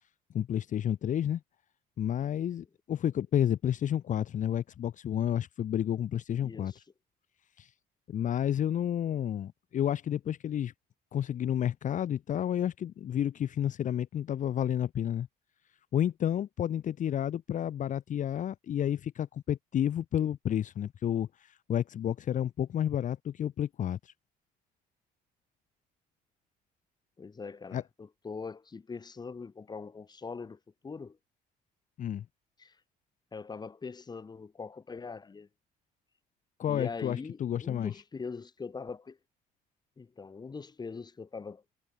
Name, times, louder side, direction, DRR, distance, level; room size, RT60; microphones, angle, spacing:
voice 1, 0.3-1.4 2.0-6.7 7.6-7.7 8.1-10.7 11.1-15.3 15.9-24.1 27.7-27.8 32.0-32.2 36.6-37.9, left 10 dB, 50° left, 1.0 m, -31 dB
voice 2, 6.4-6.8 27.2-31.2 32.6-32.8 33.3-35.5 36.7-39.2 40.0-41.6, left 4 dB, 25° left, 1.9 m, -42 dB
cardioid pair, 110°, 17 cm